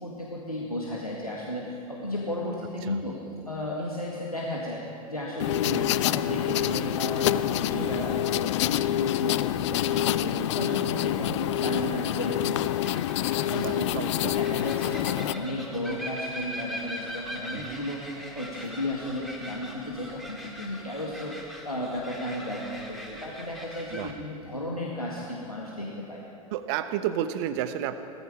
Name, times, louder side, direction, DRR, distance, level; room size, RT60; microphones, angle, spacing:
voice 1, 0.0-3.2 3.5-14.0 14.4-26.2, left 1 dB, 90° left, -4 dB, 1.9 m, -34 dB
sound 1, 5.4-15.4, left 13 dB, 55° left, 0.5 m, -27 dB
voice 2, 5.6-6.0 7.7-8.1 13.5-14.4 17.5-17.8 23.9-24.1 26.5-28.0, right 10 dB, 50° right, 11 dB, 1.0 m, -32 dB
sound 2, 7.7-24.1, equal, ahead, 2.6 m, -43 dB
18.0 x 14.5 x 4.9 m, 2.6 s
figure-of-eight pair, 85°, 18 cm